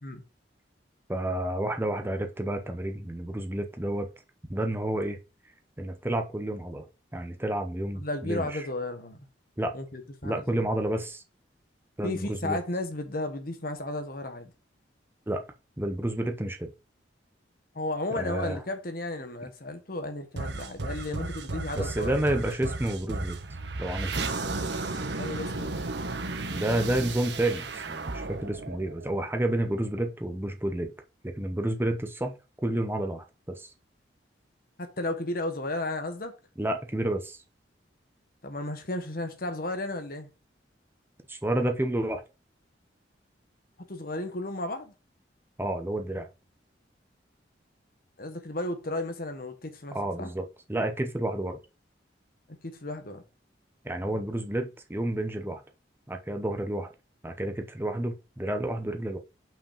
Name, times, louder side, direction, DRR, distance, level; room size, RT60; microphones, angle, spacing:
voice 1, 1.1-4.1 4.5-5.2 5.8-6.9 7.1-8.6 9.6-9.7 10.2-11.2 12.0-12.6 15.3-15.4 15.8-16.7 18.2-18.6 21.8-23.4 23.8-24.1 26.5-30.9 31.2-32.4 32.6-33.7 36.6-37.4 41.3-42.2 45.6-46.3 49.9-50.4 50.7-51.6 53.8-55.6 56.1-56.9 57.2-59.2, right 1 dB, 10° right, 0.8 m, -30 dB
voice 2, 7.9-9.3 9.7-10.6 12.0-14.5 17.7-22.1 25.2-25.8 34.8-36.3 38.4-40.3 43.9-44.9 48.2-50.3 52.5-53.2, left 2 dB, 50° left, 1.2 m, -34 dB
sound 1, 20.4-29.7, right 3 dB, 70° right, 1.0 m, -34 dB
5.8 x 5.0 x 5.0 m
head